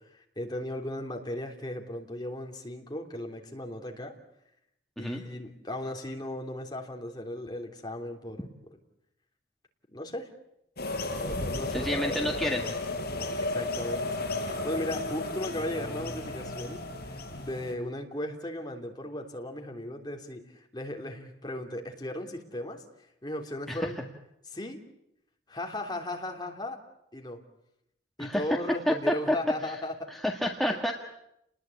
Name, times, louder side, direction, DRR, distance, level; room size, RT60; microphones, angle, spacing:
voice 1, 0.1-4.2 5.0-8.5 9.9-10.3 11.2-12.3 13.4-14.1 14.3-16.8 17.1-22.8 23.2-24.0 24.5-24.8 25.5-26.8 27.1-27.4 28.2-30.1, left 1 dB, 25° left, 2 dB, 3.3 m, -36 dB
sound 1, 10.8-17.7, left 2 dB, 55° left, 5.3 m, -33 dB
voice 2, 11.7-12.7 23.7-23.9 28.2-28.4 28.9-29.4 29.6-29.8 30.1-30.9, equal, ahead, 1 dB, 1.8 m, -29 dB
30.0 x 20.5 x 8.6 m, 0.81 s
head